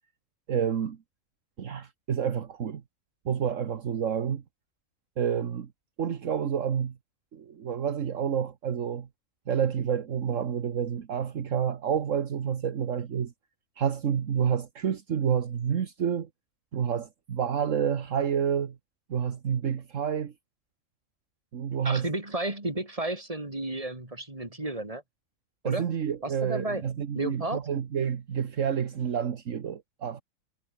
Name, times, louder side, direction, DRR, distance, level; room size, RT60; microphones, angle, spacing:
voice 1, 0.5-1.0 1.6-2.8 3.2-4.4 5.2-5.7 6.0-6.9 7.3-9.1 9.5-13.3 13.8-16.3 16.7-18.8 19.1-20.3 21.5-22.1 25.6-30.2, right 8 dB, 65° right, 1.5 m, -29 dB
voice 2, 21.8-25.0 25.6-25.9 26.2-26.9 27.1-27.6, right 2 dB, 25° right, 3.9 m, -32 dB
omnidirectional pair, 1.4 m